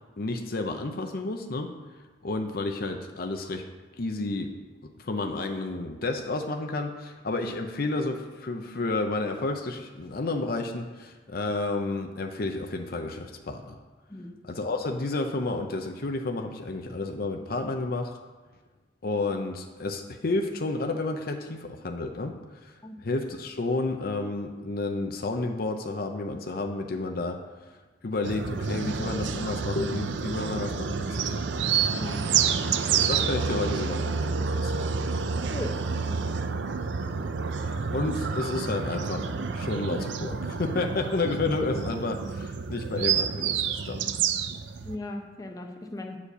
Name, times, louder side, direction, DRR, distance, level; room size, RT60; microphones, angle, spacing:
voice 1, 0.2-1.7 2.2-3.6 4.0-4.5 5.1-8.2 8.4-10.9 11.3-13.6 14.5-18.1 19.0-22.4 23.0-27.4 28.0-31.4 32.9-34.9 37.9-39.2 39.6-42.2 42.7-44.0, left 2 dB, 55° left, 5 dB, 0.6 m, -30 dB
sound 1, 28.2-45.0, right 6 dB, 75° right, 0.5 m, -29 dB
voice 2, 35.5-36.4 44.8-46.2, left 1 dB, 20° left, 2 dB, 0.8 m, -38 dB
8.4 x 4.9 x 6.6 m, 1.3 s
head